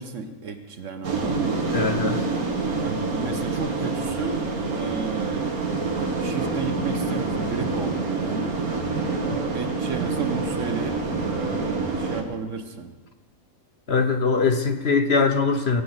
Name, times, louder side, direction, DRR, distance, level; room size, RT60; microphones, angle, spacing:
voice 1, 0.0-1.7 2.8-5.8 6.2-8.6 9.2-12.9, right 5 dB, 60° right, 7 dB, 1.4 m, -33 dB
sound 1, 1.0-12.2, right 3 dB, 80° right, 2.2 m, -27 dB
voice 2, 1.7-2.2 13.9-15.8, left 4 dB, 50° left, 7 dB, 1.0 m, -21 dB
17.5 x 6.9 x 8.0 m, 1.2 s
omnidirectional pair, 1.5 m